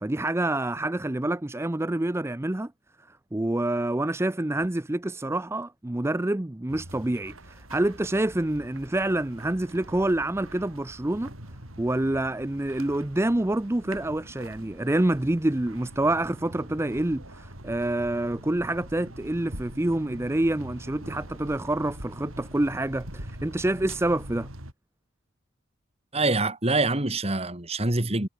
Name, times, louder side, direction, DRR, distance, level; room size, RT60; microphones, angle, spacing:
voice 1, 0.0-2.7 3.3-11.3 11.8-24.5, right 1 dB, 15° right, 0.5 m, -27 dB
sound 1, 6.7-24.7, right 1 dB, 85° right, 7.4 m, -44 dB
voice 2, 26.1-28.3, right 2 dB, 30° right, 2.4 m, -25 dB
head